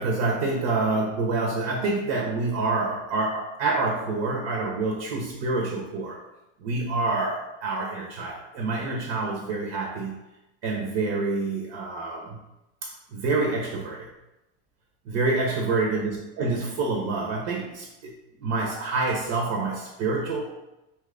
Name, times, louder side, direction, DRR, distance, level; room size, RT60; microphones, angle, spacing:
voice 1, 0.0-6.2 6.6-10.1 10.6-12.4 12.8-14.1 15.1-18.1 18.4-20.5, right 3 dB, 45° right, -1 dB, 0.7 m, -27 dB
3.0 x 2.3 x 3.6 m, 0.94 s
supercardioid pair, 120°, 36 cm